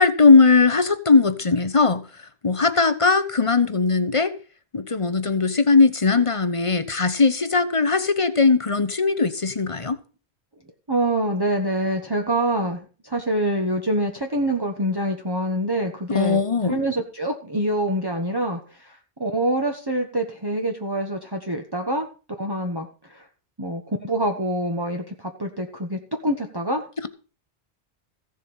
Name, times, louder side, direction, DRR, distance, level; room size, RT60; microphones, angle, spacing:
voice 1, 0.0-2.0 2.4-4.3 4.7-10.0 16.1-16.8, left 4 dB, 30° left, 0.9 m, -19 dB
voice 2, 10.9-22.1 22.4-23.3 23.6-26.9, right 1 dB, 20° right, 1.2 m, -26 dB
15.5 x 7.5 x 5.5 m
omnidirectional pair, 1.1 m